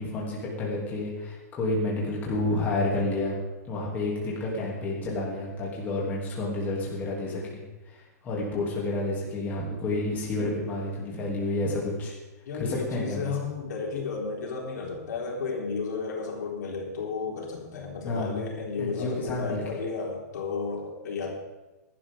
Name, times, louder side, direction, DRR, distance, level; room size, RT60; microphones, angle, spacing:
voice 1, 0.0-3.4 3.6-7.6 7.9-12.1 12.6-13.4 18.0-18.4 18.8-19.8, left 2 dB, 20° left, -4 dB, 2.9 m, -30 dB
voice 2, 12.5-21.3, left 5 dB, 80° left, -1 dB, 3.9 m, -33 dB
16.5 x 12.0 x 3.8 m, 1.1 s
hypercardioid pair, 165°, 9 cm